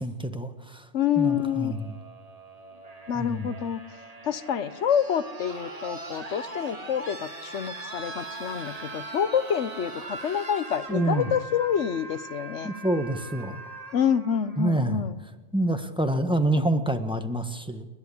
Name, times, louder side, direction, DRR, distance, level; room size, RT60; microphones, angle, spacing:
voice 1, 0.0-0.9 1.2-1.9 3.1-3.5 10.9-11.3 12.6-13.6 14.6-15.0 15.5-17.9, right 1 dB, 5° right, 7 dB, 1.2 m, -27 dB
voice 2, 0.9-1.7 3.1-3.8 4.2-12.7 13.9-15.2, left 8 dB, 75° left, 14 dB, 1.2 m, -27 dB
sound 1, 1.1-15.1 16.3-16.4, right 2 dB, 30° right, 1.6 m, -41 dB
30.0 x 10.5 x 8.5 m, 1.2 s
omnidirectional pair, 1.3 m